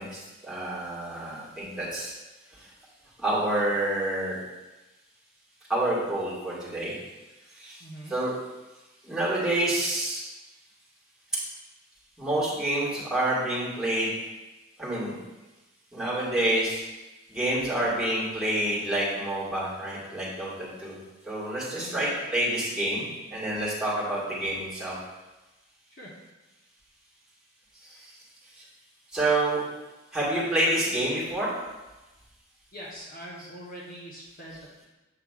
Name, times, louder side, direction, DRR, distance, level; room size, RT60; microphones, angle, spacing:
voice 1, 0.0-2.1 3.2-4.4 5.7-6.9 7.5-7.8 8.1-8.3 9.0-10.2 12.2-14.2 14.8-15.2 15.9-16.8 17.3-21.0 21.2-24.9 27.8-28.1 28.6-28.7 29.1-29.6 30.1-31.5 33.4-33.5, right 1 dB, 5° right, -9 dB, 1.9 m, -28 dB
voice 2, 7.8-8.1 21.8-22.0 25.9-26.1 32.7-34.8, equal, 45° left, -5 dB, 1.1 m, -43 dB
7.8 x 6.4 x 2.4 m, 1.1 s
head